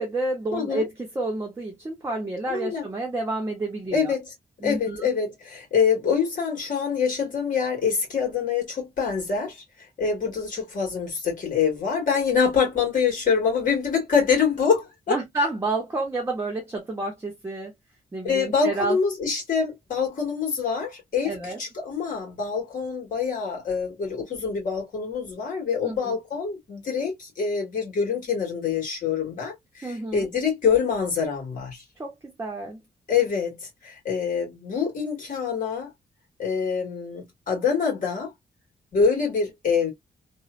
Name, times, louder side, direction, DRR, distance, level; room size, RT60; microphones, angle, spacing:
voice 1, 0.0-4.1 4.6-5.1 15.1-17.7 18.1-19.0 21.2-21.6 25.8-26.2 29.8-30.3 32.0-32.8, right 2 dB, 15° right, 0.7 m, -29 dB
voice 2, 0.5-0.8 2.5-2.9 3.9-4.3 4.6-9.6 10.0-15.2 18.2-31.8 33.1-35.9 36.4-38.3 38.9-39.9, left 6 dB, 55° left, 1.8 m, -25 dB
3.1 x 2.1 x 2.4 m
wide cardioid pair, 180°, 17 cm